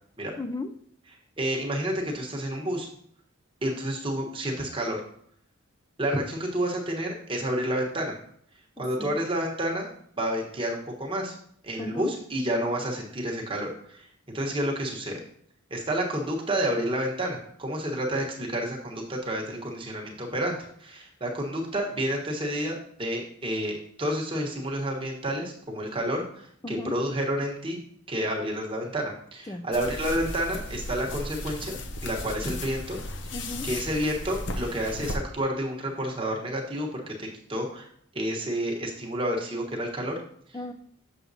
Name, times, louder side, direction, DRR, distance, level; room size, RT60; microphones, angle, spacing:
voice 1, 0.4-0.7 8.8-9.2 11.8-12.1 26.6-27.0 29.5-29.7 33.3-33.7 40.5-40.7, left 2 dB, 15° left, 9 dB, 0.4 m, -35 dB
voice 2, 1.4-2.9 3.6-5.0 6.0-8.2 8.8-9.9 10.2-11.3 11.6-15.2 15.7-27.8 28.1-33.0 33.6-37.9 38.1-40.2, right 1 dB, 25° right, 0 dB, 1.1 m, -30 dB
sound 1, 29.7-35.2, left 2 dB, 55° left, 0.7 m, -35 dB
7.2 x 6.0 x 2.7 m, 0.65 s
head